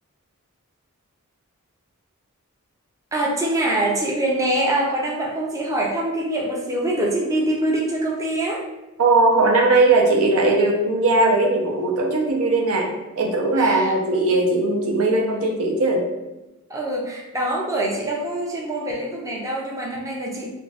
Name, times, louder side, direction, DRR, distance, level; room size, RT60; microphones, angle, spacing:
voice 1, 3.1-8.7 13.6-14.0 16.7-20.5, right 1 dB, 15° right, -2 dB, 0.4 m, -24 dB
voice 2, 9.0-12.9 13.2-16.0, right 2 dB, 75° right, 1 dB, 0.6 m, -19 dB
2.6 x 2.5 x 3.2 m, 1.0 s
head